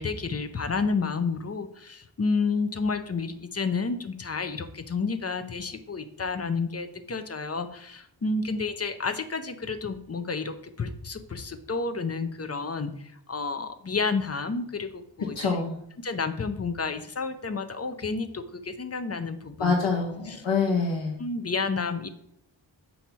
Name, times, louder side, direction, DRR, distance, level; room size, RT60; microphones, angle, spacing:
voice 1, 0.0-12.9 13.3-15.5 16.0-19.7 20.3-20.4 21.2-22.1, left 4 dB, 35° left, 9 dB, 0.6 m, -30 dB
voice 2, 15.3-15.8 19.6-21.2, left 4 dB, 80° left, -1 dB, 1.0 m, -26 dB
6.0 x 2.8 x 5.5 m, 0.73 s
wide cardioid pair, 60°, 46 cm